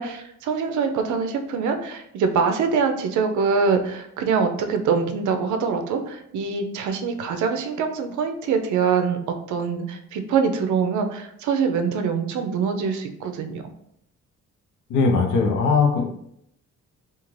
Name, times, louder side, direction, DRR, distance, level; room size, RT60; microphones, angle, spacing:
voice 1, 0.0-13.6, right 5 dB, 75° right, 6 dB, 0.5 m, -24 dB
voice 2, 14.9-16.0, left 4 dB, 85° left, 1 dB, 0.7 m, -19 dB
2.5 x 2.4 x 3.1 m, 0.75 s
cardioid pair, 90°, 30 cm